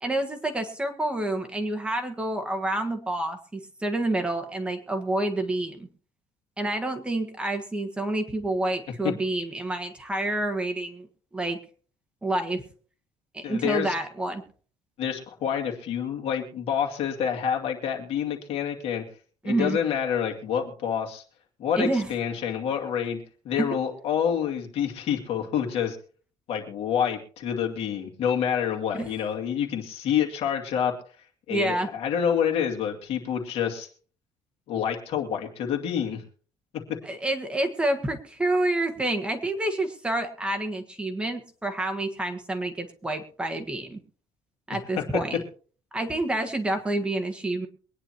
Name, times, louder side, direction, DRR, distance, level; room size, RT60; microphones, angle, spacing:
voice 1, 0.0-5.9 6.6-11.1 11.3-11.6 12.2-12.6 13.3-14.4 19.4-19.8 21.8-22.1 23.5-23.7 28.9-29.1 31.5-31.9 37.0-44.0 44.7-45.4 45.9-47.7, right 1 dB, 10° right, 5 dB, 1.5 m, -28 dB
voice 2, 13.4-13.9 15.0-19.0 19.4-21.2 21.6-26.0 26.5-30.9 31.5-33.9 34.7-36.2 36.7-36.8 45.0-45.1, left 8 dB, 65° left, 2 dB, 2.5 m, -27 dB
23.0 x 9.9 x 2.9 m, 0.42 s
cardioid pair, 130°, 11 cm